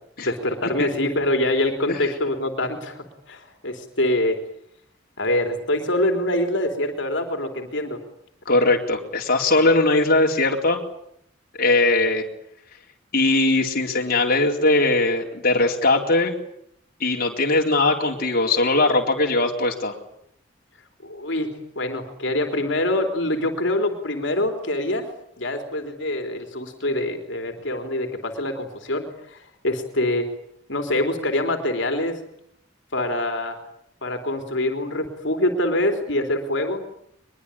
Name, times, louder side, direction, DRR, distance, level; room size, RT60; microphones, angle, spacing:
voice 1, 0.3-4.4 5.2-8.0 21.0-25.1 25.4-30.3 30.7-32.2 32.9-33.6 34.0-36.9, left 1 dB, 65° left, 5 dB, 3.6 m, -25 dB
voice 2, 8.5-10.8 11.6-12.3 13.1-16.3 17.0-20.0, left 2 dB, 50° left, 1 dB, 3.9 m, -20 dB
23.5 x 22.0 x 9.9 m, 0.72 s
head